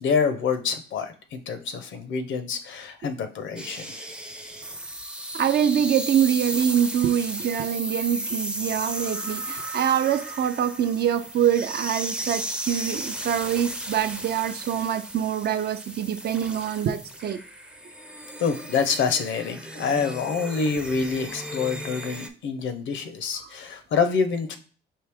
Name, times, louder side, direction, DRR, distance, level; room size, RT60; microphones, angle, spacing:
voice 1, 0.0-4.0 18.4-24.6, left 5 dB, 70° left, 0.7 m, -26 dB
sound 1, 3.6-22.3, right 1 dB, 5° right, 0.5 m, -35 dB
voice 2, 5.3-17.4, right 9 dB, 55° right, 0.5 m, -25 dB
4.6 x 2.8 x 3.5 m
cardioid pair, 90°, 20 cm